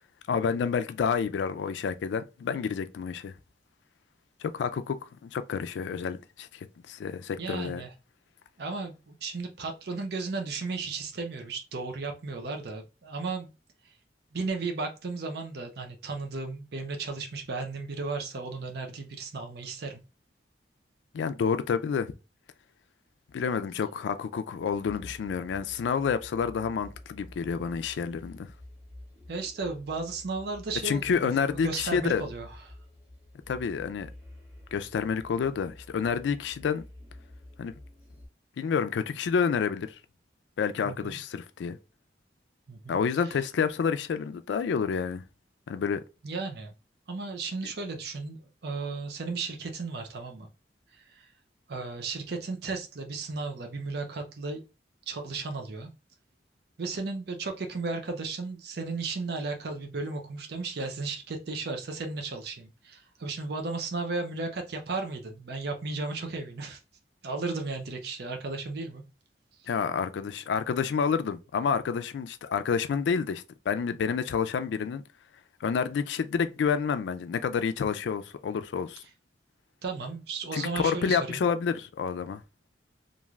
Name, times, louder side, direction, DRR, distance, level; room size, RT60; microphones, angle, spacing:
voice 1, 0.3-3.3 4.4-7.8 21.1-22.1 23.3-28.5 30.8-32.2 33.5-34.1 34.7-36.8 37.6-37.7 38.6-39.9 40.6-41.8 42.9-45.2 45.7-46.0 69.7-75.0 75.6-79.0 80.5-82.4, left 6 dB, 80° left, 0.3 m, -29 dB
voice 2, 7.4-7.9 8.6-13.5 14.3-20.0 29.3-32.7 40.8-41.2 42.7-43.0 46.2-46.7 47.1-50.5 51.0-51.3 51.7-54.6 55.1-55.9 56.8-66.8 67.2-69.0 79.8-81.4, right 3 dB, 65° right, 0.5 m, -35 dB
sound 1, 24.6-38.3, left 1 dB, 5° right, 1.4 m, -49 dB
3.1 x 2.5 x 2.3 m
head